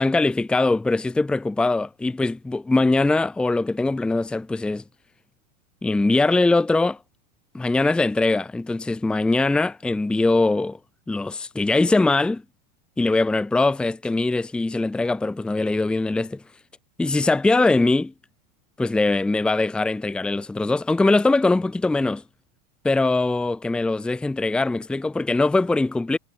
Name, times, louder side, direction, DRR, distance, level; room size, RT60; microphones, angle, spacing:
voice 1, 0.0-4.8 5.8-7.0 7.5-10.8 11.1-12.4 13.0-16.4 17.0-18.1 18.8-22.2 22.8-26.2, left 2 dB, 5° left, 0.8 m, -21 dB
supercardioid pair, 160°, 21 cm